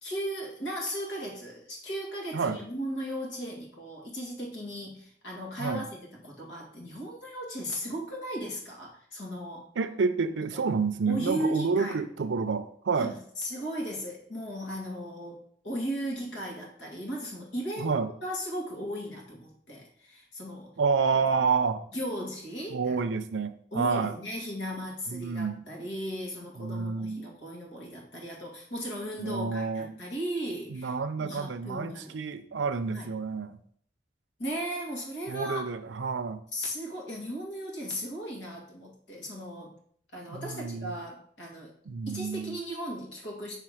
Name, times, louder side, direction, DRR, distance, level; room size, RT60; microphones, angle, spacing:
voice 1, 0.0-5.8 6.1-9.7 10.5-10.6 11.1-12.0 13.0-17.9 18.2-20.7 21.9-23.0 23.7-30.9 31.2-32.2 32.9-33.1 34.4-35.6 36.5-39.7 40.1-41.7 42.1-43.6, equal, 80° left, -1 dB, 1.9 m, -36 dB
voice 2, 9.8-13.2 17.8-18.1 20.8-21.8 22.7-24.1 25.1-25.6 26.6-27.2 29.2-29.9 30.7-33.6 35.3-36.4 40.3-41.0 41.9-42.6, right 5 dB, 85° right, 11 dB, 0.5 m, -29 dB
5.6 x 3.4 x 4.9 m, 0.62 s
head